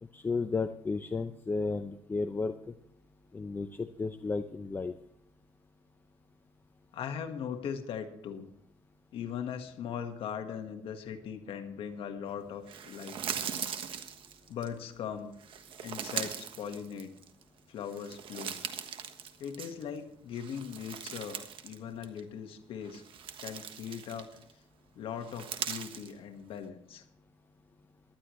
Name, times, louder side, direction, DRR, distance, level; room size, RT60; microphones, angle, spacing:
voice 1, 0.0-2.7 3.3-4.9, left 4 dB, 20° left, 8 dB, 0.7 m, -33 dB
voice 2, 6.9-8.5 9.1-13.6 14.5-15.3 15.8-17.1 17.7-18.6 19.4-23.0 23.4-24.3 24.9-27.0, left 8 dB, 65° left, 6 dB, 1.6 m, -40 dB
sound 1, 12.7-14.7 15.4-17.4 17.8-20.0 20.3-21.8 22.0-22.2 22.8-24.5 25.2-26.1, right 8 dB, 60° right, 1.3 m, -40 dB
19.0 x 11.5 x 3.2 m, 0.74 s
cardioid pair, 125°, 10 cm